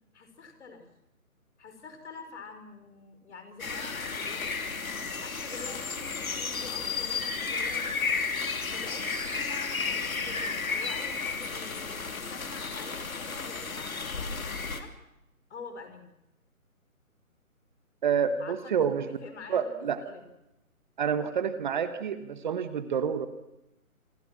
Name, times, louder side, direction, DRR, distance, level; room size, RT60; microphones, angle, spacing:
voice 1, 0.1-0.9 1.6-4.7 5.2-8.1 8.7-14.9 15.5-16.1 18.4-19.7 20.0-20.2, left 4 dB, 50° left, 7 dB, 5.3 m, -47 dB
sound 1, 3.6-14.8, left 4 dB, 70° left, 3.0 m, -33 dB
voice 2, 18.0-19.1 19.5-20.0 21.0-23.3, right 7 dB, 35° right, 11 dB, 1.3 m, -28 dB
27.5 x 22.0 x 6.1 m, 0.89 s
figure-of-eight pair, 150°, 43 cm